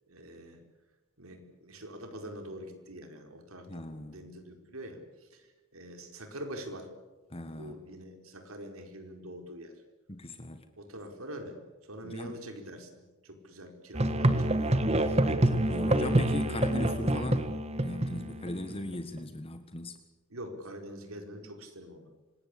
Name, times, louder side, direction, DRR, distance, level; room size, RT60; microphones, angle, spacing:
voice 1, 0.1-0.6 1.2-5.5 5.7-6.9 7.6-9.7 10.8-11.6 11.9-15.1 20.3-22.1, equal, 85° right, 5 dB, 4.8 m, -44 dB
voice 2, 3.7-4.2 7.3-7.7 10.1-10.6 12.0-12.4 15.4-17.5 17.8-20.0, left 1 dB, 25° left, 8 dB, 1.6 m, -38 dB
Musical instrument, 13.9-18.7, right 1 dB, 30° right, 1.6 m, -27 dB
26.0 x 20.5 x 8.6 m, 1.2 s
head